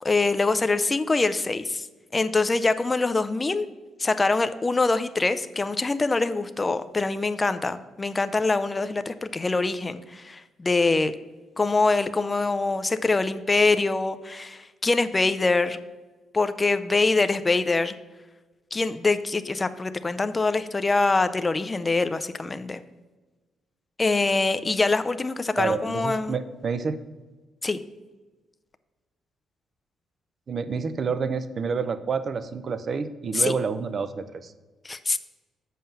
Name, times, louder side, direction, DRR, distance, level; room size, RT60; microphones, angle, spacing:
voice 1, 0.0-1.9 2.1-3.7 4.0-11.1 11.6-15.8 16.3-18.0 18.7-22.8 24.0-26.4 27.6-27.8 33.3-33.5 34.8-35.2, left 3 dB, 20° left, 11 dB, 0.4 m, -24 dB
voice 2, 25.6-27.0 30.5-34.5, right 5 dB, 40° right, 12 dB, 0.5 m, -28 dB
7.4 x 5.6 x 5.5 m, 1.3 s
cardioid pair, 130°, 0 cm